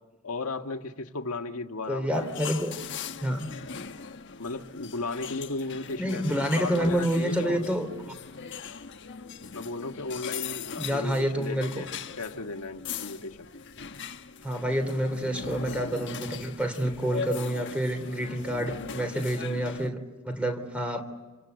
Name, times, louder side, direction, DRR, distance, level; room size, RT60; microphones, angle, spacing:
voice 1, 0.2-2.3 4.4-7.8 9.5-11.9 12.2-13.5, left 3 dB, 80° left, 6 dB, 1.6 m, -35 dB
voice 2, 1.9-2.8 3.2-3.5 6.0-7.9 10.8-11.8 14.4-21.0, equal, 5° right, 7 dB, 3.2 m, -28 dB
sound 1, 2.1-19.9, left 6 dB, 55° left, 1.3 m, -39 dB
28.0 x 26.5 x 8.0 m, 1.2 s
head